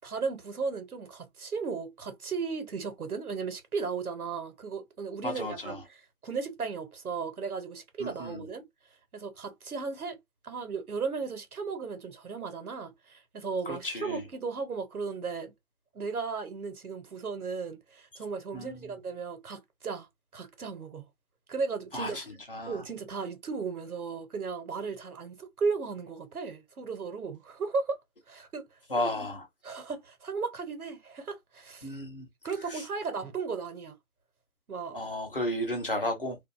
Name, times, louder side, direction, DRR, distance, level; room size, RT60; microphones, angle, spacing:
voice 1, 0.0-8.6 9.1-10.2 10.4-15.5 15.9-20.1 20.3-21.1 21.5-22.3 22.7-28.0 28.3-29.3 29.6-32.0 32.4-33.9 34.7-35.0, right 5 dB, 80° right, 1.0 m, -35 dB
voice 2, 5.2-5.8 8.0-8.4 13.7-14.2 18.5-18.9 21.9-22.2 22.5-22.8 28.9-29.4 31.8-32.3 32.7-32.8 34.9-36.4, left 1 dB, 40° left, 0.8 m, -33 dB
2.5 x 2.4 x 2.4 m
figure-of-eight pair, 170°, 43 cm